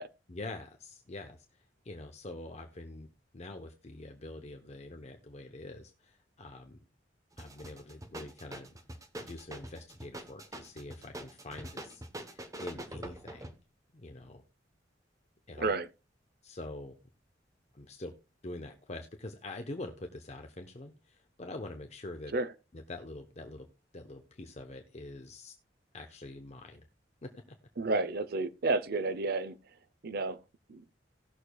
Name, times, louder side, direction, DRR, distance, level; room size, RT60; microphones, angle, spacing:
voice 1, 0.3-3.1 3.3-6.8 7.4-8.7 9.2-13.5 13.9-14.4 15.5-15.7 16.4-17.0 17.7-18.1 18.4-22.3 22.7-23.7 23.9-25.5 25.9-26.9 27.2-27.6, left 2 dB, 40° left, 0.9 m, -45 dB
sound 1, 7.3-13.6, right 1 dB, 20° right, 0.9 m, -45 dB
voice 2, 15.6-15.9 22.3-22.5 27.8-29.6 30.0-30.4 30.7-30.8, right 3 dB, 60° right, 0.7 m, -31 dB
18.5 x 6.5 x 2.3 m
head